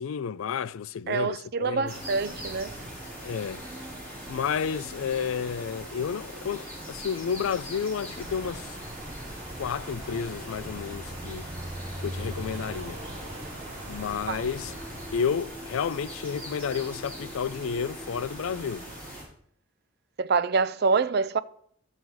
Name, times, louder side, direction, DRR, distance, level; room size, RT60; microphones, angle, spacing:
voice 1, 0.0-1.9 3.2-3.6 4.3-8.8 9.6-11.5 12.0-13.0 13.9-14.7 15.1-18.9, left 7 dB, 80° left, 0.4 m, -31 dB
voice 2, 1.1-2.7 14.3-14.4 20.2-21.4, right 4 dB, 50° right, 0.5 m, -26 dB
sound 1, 1.9-19.2, equal, 5° left, 5.6 m, -41 dB
sound 2, 8.1-15.2, right 1 dB, 30° right, 2.2 m, -41 dB
13.0 x 7.7 x 4.7 m
head